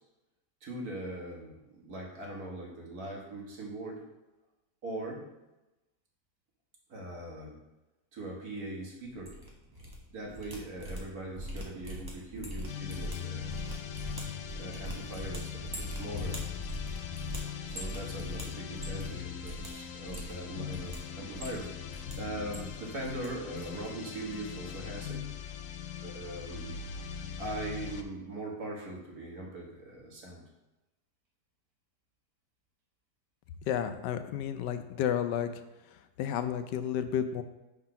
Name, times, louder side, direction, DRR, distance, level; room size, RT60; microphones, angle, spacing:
voice 1, 0.6-4.0 4.8-5.3 6.9-7.6 8.1-9.3 10.1-13.6 14.0-14.1 14.6-16.4 17.7-25.3 26.0-26.9 27.4-30.4, right 1 dB, 60° right, -2 dB, 2.0 m, -41 dB
sound 1, 9.1-9.9 10.2-19.1 19.4-19.7 20.0-21.0 21.3-22.1 22.4-23.3 23.5-23.9 24.1-24.3, equal, 15° right, 1.2 m, -41 dB
sound 2, 12.7-28.1, left 8 dB, 65° left, 0.8 m, -41 dB
voice 2, 33.6-35.5 35.9-37.4, left 9 dB, 85° left, 9 dB, 1.2 m, -32 dB
5.8 x 4.6 x 5.7 m, 1.0 s
omnidirectional pair, 1.8 m